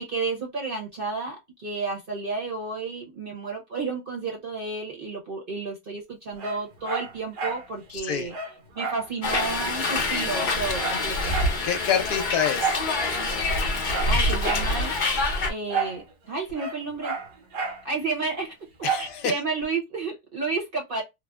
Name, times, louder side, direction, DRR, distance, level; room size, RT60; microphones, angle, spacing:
voice 1, 0.0-8.3 8.7-11.4 14.1-14.9 15.2-17.1 17.8-18.5 19.0-21.0, right 4 dB, 40° right, 0.9 m, -31 dB
Dog, 6.4-7.7 8.0-8.1 8.3-9.6 9.9-10.0 10.3-11.6 12.6-12.9 13.4-14.7 15.7-16.0 16.3-17.8 18.8-19.1 19.6-19.7, right 5 dB, 80° right, 1.5 m, -31 dB
voice 2, 7.9-8.3 11.6-12.8 18.8-19.3, left 8 dB, 75° left, 1.0 m, -27 dB
Hiss, 9.2-15.5, left 2 dB, 50° left, 0.6 m, -26 dB
3.2 x 2.0 x 2.3 m
omnidirectional pair, 1.8 m